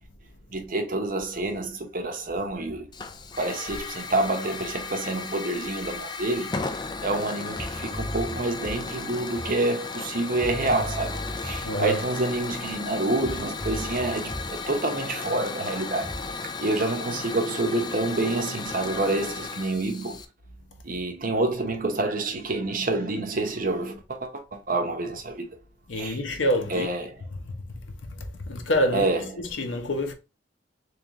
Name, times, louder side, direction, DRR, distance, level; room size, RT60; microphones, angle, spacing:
voice 1, 0.5-2.9 3.4-6.7 7.0-16.1 16.6-20.2 20.8-25.6 25.9-26.2 26.7-27.2 28.9-29.4, right 2 dB, 45° right, 0.8 m, -28 dB
Hiss / Fire, 2.9-20.2, left 4 dB, 20° left, 0.3 m, -35 dB
sound 1, 6.2-10.1 10.4-13.0 13.2-16.3, equal, ahead, 1.3 m, -39 dB
voice 2, 11.6-12.0 25.9-26.9 27.5-27.6 28.1-29.1 29.6-30.1, equal, 80° left, 0.8 m, -26 dB
3.3 x 3.2 x 3.5 m
head